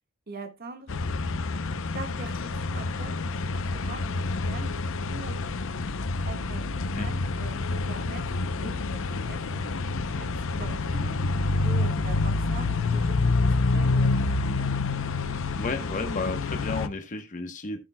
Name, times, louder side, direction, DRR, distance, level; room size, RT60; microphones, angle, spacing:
voice 1, 0.3-0.9 1.9-4.8 5.1-5.4 6.3-11.2 11.6-14.5, right 3 dB, 45° right, 1.7 m, -43 dB
sound 1, 0.9-16.9, left 3 dB, 65° left, 0.7 m, -27 dB
voice 2, 15.6-17.8, left 3 dB, 35° left, 1.1 m, -32 dB
14.5 x 8.6 x 2.3 m
head